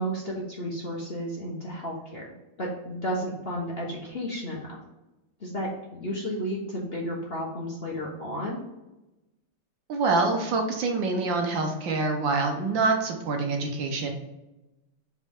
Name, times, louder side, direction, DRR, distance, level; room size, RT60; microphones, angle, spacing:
voice 1, 0.0-2.2 2.6-4.6 5.4-8.6, equal, 35° left, -3 dB, 1.2 m, -32 dB
voice 2, 9.9-14.1, right 3 dB, 65° right, 3 dB, 1.6 m, -26 dB
7.9 x 4.4 x 3.6 m, 0.99 s
omnidirectional pair, 2.3 m